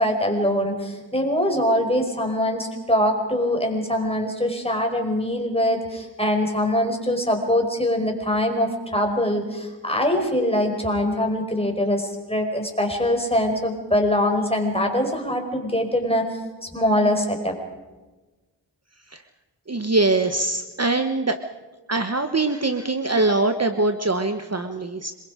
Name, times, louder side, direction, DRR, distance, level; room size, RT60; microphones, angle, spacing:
voice 1, 0.0-16.3 16.7-17.5, left 1 dB, 15° left, 3 dB, 5.0 m, -23 dB
voice 2, 19.7-21.4 21.9-25.1, right 2 dB, 35° right, 7 dB, 1.2 m, -22 dB
26.5 x 21.5 x 5.1 m, 1.2 s
cardioid pair, 45°, 43 cm